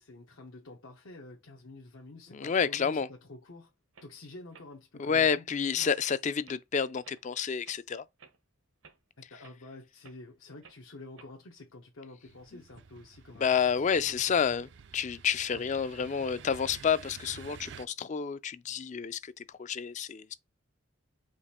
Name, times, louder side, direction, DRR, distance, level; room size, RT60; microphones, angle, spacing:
voice 1, 0.0-3.7 4.0-5.9 9.3-14.6 15.5-15.7, left 2 dB, 80° left, 1.0 m, -49 dB
voice 2, 2.3-3.1 5.0-8.0 13.4-20.3, left 6 dB, 35° left, 0.3 m, -29 dB
sound 1, 3.5-3.6 3.9-4.1 4.5-4.7 5.2-5.3 5.8-6.0 6.4-6.6 7.0-7.2 7.6-7.8 8.2-8.4 8.8-9.0 9.4-9.6 10.0-10.2 10.6-10.8 11.2-11.4, right 5 dB, 85° right, 1.0 m, -56 dB
sound 2, 12.2-17.9, right 6 dB, 60° right, 0.4 m, -51 dB
5.1 x 2.5 x 4.2 m
head